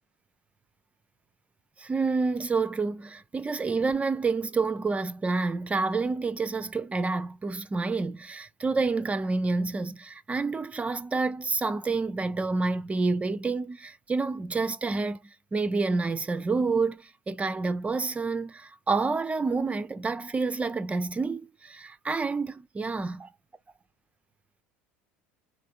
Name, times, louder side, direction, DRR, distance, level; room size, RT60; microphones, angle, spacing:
voice 1, 1.8-15.2 15.5-23.3, right 3 dB, 20° right, 0.4 m, -28 dB
4.2 x 3.4 x 2.4 m
hypercardioid pair, 80°, 7 cm